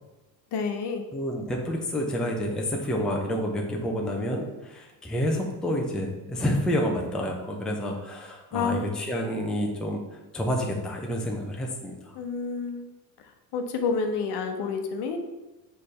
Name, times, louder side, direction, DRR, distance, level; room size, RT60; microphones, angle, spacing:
voice 1, 0.5-1.1 8.5-8.9 12.1-12.9 13.5-15.2, left 5 dB, 60° left, 5 dB, 0.9 m, -29 dB
voice 2, 1.1-12.2, equal, ahead, 0 dB, 0.5 m, -29 dB
6.5 x 3.3 x 5.5 m, 1.1 s
cardioid pair, 155°, 45 cm